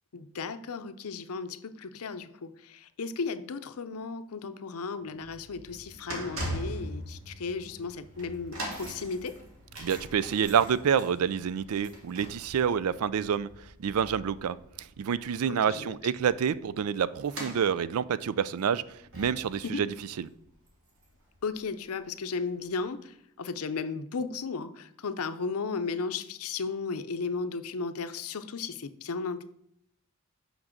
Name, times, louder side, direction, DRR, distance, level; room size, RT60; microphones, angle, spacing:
voice 1, 0.1-9.4 15.4-16.0 19.6-19.9 21.4-29.4, left 4 dB, 80° left, 11 dB, 0.6 m, -35 dB
sound 1, 5.0-21.4 21.6-21.9 22.7-22.8, right 1 dB, 60° right, 2.3 m, -43 dB
voice 2, 9.8-13.5 13.8-18.8 19.1-19.9 20.2-20.3, right 7 dB, 80° right, 17 dB, 0.4 m, -28 dB
6.0 x 5.3 x 6.5 m, 0.71 s
head